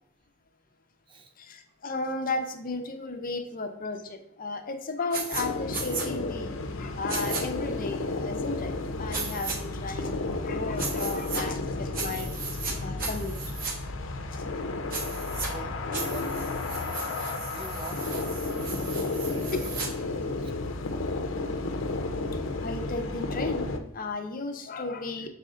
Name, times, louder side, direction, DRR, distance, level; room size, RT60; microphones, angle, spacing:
voice 1, 1.4-8.7 9.0-12.3 12.8-13.4 14.3-14.4 19.5-19.7 22.6-23.7 23.9-25.3, left 3 dB, 45° left, 6 dB, 0.7 m, -34 dB
sound 1, 5.1-5.4 5.7-6.1 7.1-7.4 9.1-9.6 10.8-11.4 11.9-12.7 13.0-13.7 14.9-15.5 15.9-19.9, right 4 dB, 45° right, 1.2 m, -35 dB
sound 2, 5.3-23.8, left 3 dB, 90° left, 0.6 m, -32 dB
voice 2, 14.9-15.2 15.5-16.7 17.4-19.5 20.2-20.5, right 2 dB, 25° right, 6 dB, 0.5 m, -46 dB
6.6 x 4.2 x 3.7 m, 0.78 s
head